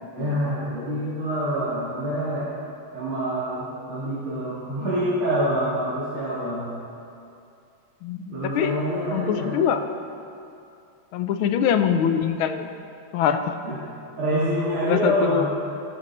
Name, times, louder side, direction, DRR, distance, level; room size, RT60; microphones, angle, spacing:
voice 1, 0.1-2.5 2.9-6.7 8.3-9.6 13.6-13.7 14.2-15.5, equal, 75° right, -11 dB, 3.4 m, -26 dB
voice 2, 8.0-8.7 9.1-9.8 11.1-12.7 13.1-13.5 14.8-15.5, left 8 dB, 80° left, 7 dB, 1.5 m, -23 dB
16.0 x 7.7 x 4.4 m, 2.6 s
omnidirectional pair, 2.3 m